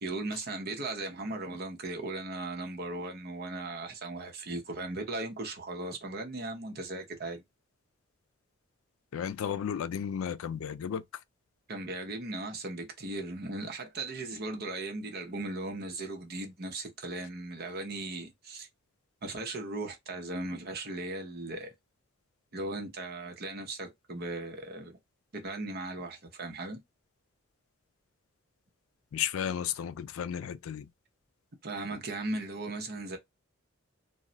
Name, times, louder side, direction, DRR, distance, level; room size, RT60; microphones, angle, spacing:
voice 1, 0.0-7.4 11.7-18.7 19.2-21.7 22.5-25.0 25.3-26.8 31.6-33.2, right 2 dB, 50° right, 0.7 m, -37 dB
voice 2, 9.1-11.0 29.1-30.9, left 8 dB, 85° left, 0.3 m, -33 dB
2.2 x 2.1 x 3.8 m
head